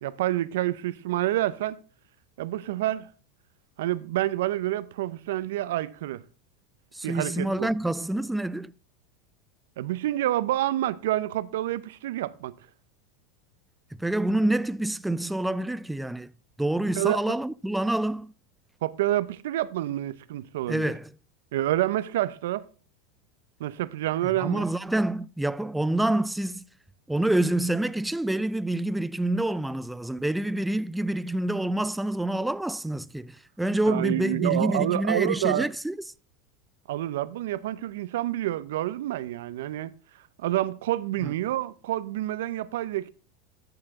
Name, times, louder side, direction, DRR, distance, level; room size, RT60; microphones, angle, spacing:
voice 1, 0.0-1.8 2.4-3.1 3.8-6.2 7.0-7.7 9.8-12.5 17.0-17.2 18.8-20.9 21.5-22.7 23.6-24.7 33.9-35.7 36.9-39.9 40.4-43.1, right 14 dB, 80° right, 0.6 m, -28 dB
voice 2, 6.9-8.7 14.0-16.3 16.6-18.3 20.7-21.1 24.2-26.6 27.1-36.0 41.2-41.3, right 1 dB, 5° right, 0.3 m, -27 dB
14.0 x 4.8 x 3.6 m
supercardioid pair, 125°, 0 cm